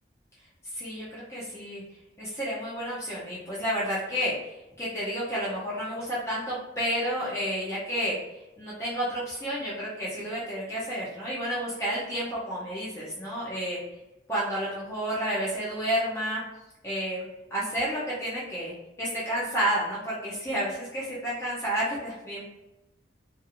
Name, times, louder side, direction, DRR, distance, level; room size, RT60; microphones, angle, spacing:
voice 1, 0.7-1.8 2.2-4.5 4.8-8.2 8.6-13.8 14.3-16.4 16.8-17.2 17.5-18.7 19.0-22.4, equal, 15° left, -8 dB, 0.5 m, -30 dB
2.5 x 2.5 x 2.8 m, 0.99 s
head